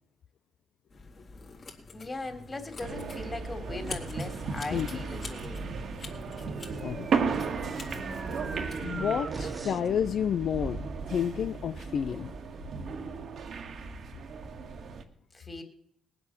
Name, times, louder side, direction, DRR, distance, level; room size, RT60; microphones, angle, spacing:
sound 1, 0.9-8.8, left 3 dB, 50° left, 3.7 m, -46 dB
voice 1, 1.9-5.7 15.3-15.6, left 2 dB, 30° left, 7 dB, 3.3 m, -39 dB
sound 2, 2.8-15.0, right 5 dB, 65° right, 1.8 m, -35 dB
voice 2, 4.7-5.0 6.8-7.1 8.8-12.4, left 8 dB, 70° left, 12 dB, 0.5 m, -30 dB
sound 3, 6.5-10.0, right 3 dB, 30° right, 1.4 m, -43 dB
19.5 x 7.9 x 7.3 m, 0.66 s
supercardioid pair, 65°, 0 cm